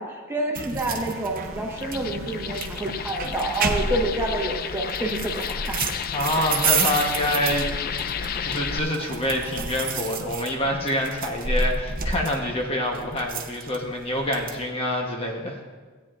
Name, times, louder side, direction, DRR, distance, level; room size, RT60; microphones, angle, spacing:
voice 1, 0.0-5.8, right 1 dB, 10° right, -1 dB, 1.2 m, -28 dB
sound 1, 0.5-14.6, right 4 dB, 45° right, 0.8 m, -31 dB
sound 2, 1.0-10.0, right 1 dB, 75° right, 0.8 m, -44 dB
sound 3, 1.7-8.8, left 8 dB, 45° left, 0.4 m, -32 dB
voice 2, 6.1-7.8 8.4-15.6, left 1 dB, 30° left, 0 dB, 1.0 m, -26 dB
16.0 x 9.1 x 2.5 m, 1.4 s
head